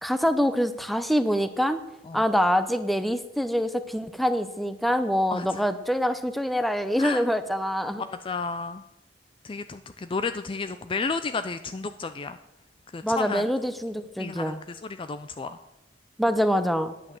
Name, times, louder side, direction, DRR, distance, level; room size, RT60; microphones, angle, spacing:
voice 1, 0.0-1.8 2.1-8.0 13.0-14.6 16.2-16.9, equal, ahead, 10 dB, 0.7 m, -25 dB
voice 2, 5.3-5.6 7.0-7.2 8.0-8.8 9.4-12.4 12.9-13.5 14.2-15.6, left 4 dB, 30° left, 10 dB, 0.4 m, -32 dB
10.0 x 8.6 x 7.6 m, 0.91 s
head